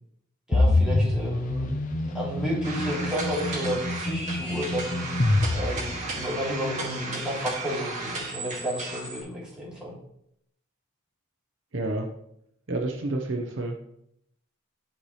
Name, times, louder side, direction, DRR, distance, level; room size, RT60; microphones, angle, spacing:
sound 1, 0.5-6.5, left 2 dB, 40° left, 0.6 m, -26 dB
voice 1, 0.5-1.7 2.1-5.1 5.5-9.9, equal, 5° right, -7 dB, 2.8 m, -31 dB
sound 2, 2.6-9.2, right 3 dB, 35° right, 2.1 m, -35 dB
voice 2, 11.7-12.1 12.7-13.8, right 2 dB, 65° right, 2 dB, 0.9 m, -29 dB
12.5 x 4.2 x 3.2 m, 0.74 s
head